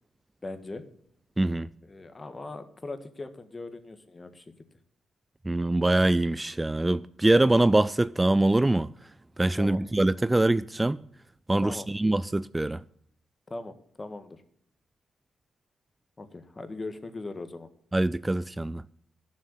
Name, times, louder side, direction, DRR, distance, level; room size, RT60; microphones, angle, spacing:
voice 1, 0.4-0.8 1.8-4.5 9.5-9.8 11.6-11.9 13.5-14.4 16.2-17.7, left 2 dB, 30° left, 1.6 m, -39 dB
voice 2, 1.4-1.7 5.5-8.9 9.4-11.0 11.5-12.8 17.9-18.8, right 2 dB, 15° right, 0.4 m, -24 dB
11.5 x 6.3 x 8.3 m
supercardioid pair, 55°, 0 cm